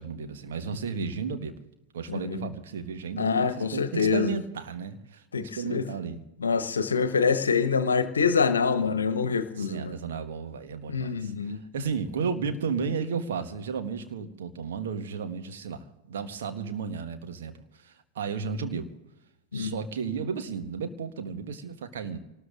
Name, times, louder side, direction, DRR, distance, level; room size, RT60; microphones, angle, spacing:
voice 1, 0.0-1.6 1.9-6.2 9.6-18.9 19.5-22.2, right 6 dB, 60° right, 7 dB, 1.5 m, -33 dB
voice 2, 2.1-2.5 3.2-4.3 5.3-5.9 6.4-10.0 10.9-11.6 19.5-19.7, left 5 dB, 70° left, 12 dB, 1.0 m, -25 dB
28.5 x 19.0 x 2.6 m, 0.95 s
figure-of-eight pair, 90°, 0 cm